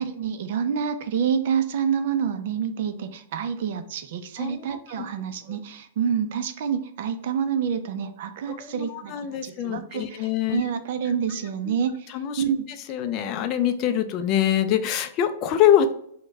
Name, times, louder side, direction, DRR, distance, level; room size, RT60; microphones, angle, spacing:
voice 1, 0.0-12.1 12.4-12.7, right 7 dB, 60° right, 10 dB, 0.4 m, -27 dB
voice 2, 4.4-4.8 5.5-5.6 8.5-10.6 11.7-11.8 12.1-12.4 12.9-15.9, left 10 dB, 40° left, 9 dB, 0.3 m, -24 dB
3.1 x 2.1 x 3.5 m, 0.68 s
hypercardioid pair, 130°, 0 cm